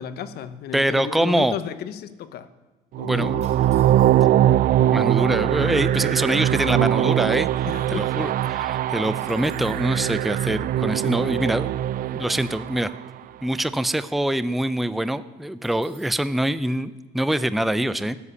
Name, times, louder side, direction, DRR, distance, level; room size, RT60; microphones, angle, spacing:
voice 1, 0.0-2.5 3.0-3.5 7.6-8.3 9.6-9.8, left 8 dB, 70° left, 12 dB, 1.1 m, -33 dB
voice 2, 0.7-1.5 3.1-3.4 4.9-7.5 7.9-11.7 12.1-12.9 13.4-18.2, right 1 dB, ahead, 14 dB, 0.5 m, -24 dB
sound 1, 2.9-13.1, right 12 dB, 60° right, 0.4 m, -22 dB
sound 2, 3.4-4.5 5.3-5.4 5.6-5.9 6.4-7.8 8.2-8.3 8.5-9.9 15.6-16.3, right 4 dB, 40° right, 4.4 m, -53 dB
12.5 x 8.2 x 9.7 m, 1.2 s
cardioid pair, 110°, 17 cm